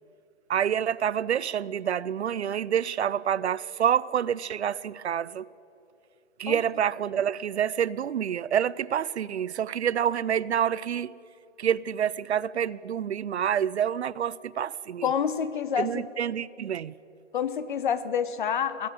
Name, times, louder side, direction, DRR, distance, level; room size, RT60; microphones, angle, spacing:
voice 1, 0.5-5.5 6.4-11.1 11.6-15.1 15.8-16.9, right 9 dB, 60° right, 0.6 m, -27 dB
voice 2, 15.0-16.1 17.3-18.9, left 7 dB, 40° left, 1.0 m, -28 dB
21.5 x 16.0 x 8.5 m
hypercardioid pair, 160°, 37 cm